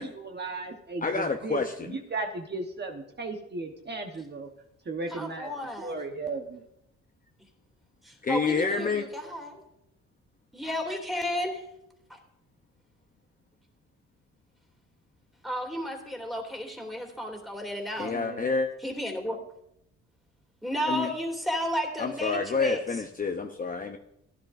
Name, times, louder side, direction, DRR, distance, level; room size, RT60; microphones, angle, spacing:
voice 1, 0.0-4.5 4.9-5.5 5.8-6.6 18.0-18.5, right 3 dB, 35° right, 3 dB, 1.2 m, -36 dB
voice 2, 1.0-1.7 8.2-9.0 18.0-18.7 20.9-21.1 22.0-24.0, left 4 dB, 30° left, 4 dB, 0.8 m, -28 dB
voice 3, 5.1-6.0 8.0-9.6 10.5-11.6 12.1-12.2 15.4-18.2 18.8-19.4 20.6-23.0, equal, ahead, 0 dB, 2.8 m, -33 dB
15.5 x 10.5 x 2.6 m, 0.79 s
cardioid pair, 90°, 30 cm